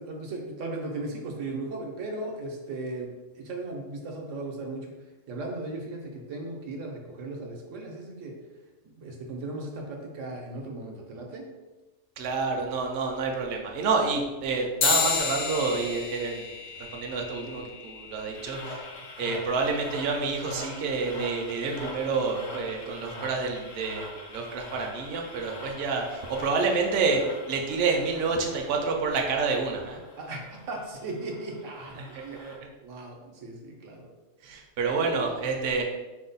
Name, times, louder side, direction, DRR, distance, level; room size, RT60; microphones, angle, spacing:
voice 1, 0.0-4.9 5.3-8.3 9.0-11.5 30.2-32.4 32.8-34.1 34.5-34.9, right 2 dB, 85° right, 0 dB, 1.1 m, -37 dB
voice 2, 12.2-18.8 19.2-30.0 31.9-32.5 34.4-35.8, right 4 dB, 60° right, 1 dB, 0.8 m, -28 dB
sound 1, 14.8-24.6, left 6 dB, 55° left, 0.6 m, -35 dB
sound 2, 18.3-32.6, left 1 dB, 80° left, 1.3 m, -43 dB
4.6 x 2.1 x 3.9 m, 1.2 s
omnidirectional pair, 1.3 m